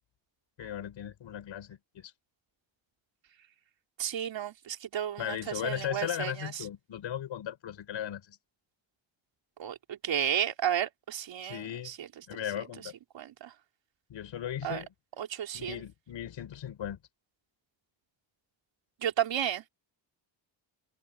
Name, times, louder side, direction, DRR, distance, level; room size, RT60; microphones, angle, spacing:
voice 1, 0.6-2.1 5.2-8.4 11.4-11.9 12.3-12.9 14.1-14.9 15.5-17.0, left 10 dB, 70° left, 5.1 m, -37 dB
voice 2, 4.0-6.6 9.6-12.1 13.1-13.5 14.6-14.8 15.2-15.8 19.0-19.6, right 10 dB, 70° right, 3.9 m, -33 dB
open air
cardioid pair, 140°, 47 cm